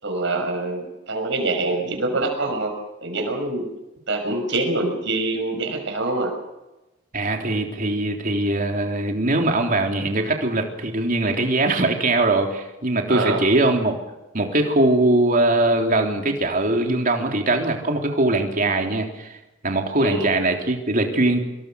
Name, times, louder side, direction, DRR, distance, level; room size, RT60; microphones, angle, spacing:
voice 1, 0.0-2.7 3.0-3.7 4.1-6.3 13.1-13.4 20.0-20.3, right 2 dB, 65° right, 3 dB, 6.2 m, -25 dB
voice 2, 7.1-14.0 14.3-19.3 19.6-21.4, right 2 dB, 45° right, 3 dB, 3.5 m, -21 dB
26.5 x 22.5 x 6.5 m, 1.0 s
head